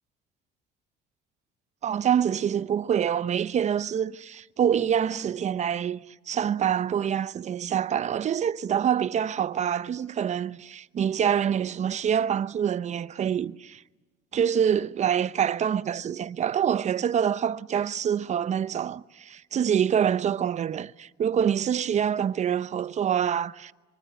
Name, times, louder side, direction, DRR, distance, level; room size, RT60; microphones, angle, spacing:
voice 1, 1.8-13.8 14.3-23.7, right 8 dB, 45° right, 0.8 m, -26 dB
25.0 x 24.0 x 8.2 m
cardioid pair, 110°, 17 cm